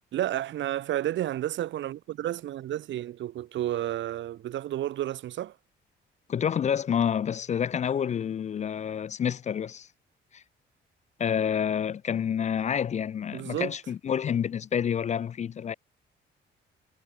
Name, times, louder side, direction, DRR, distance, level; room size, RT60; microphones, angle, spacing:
voice 1, 0.1-5.5 13.3-13.7, right 13 dB, 70° right, 0.9 m, -31 dB
voice 2, 6.3-9.9 10.3-10.4 11.2-15.7, left 8 dB, 35° left, 0.4 m, -28 dB
cardioid pair, 90°, 20 cm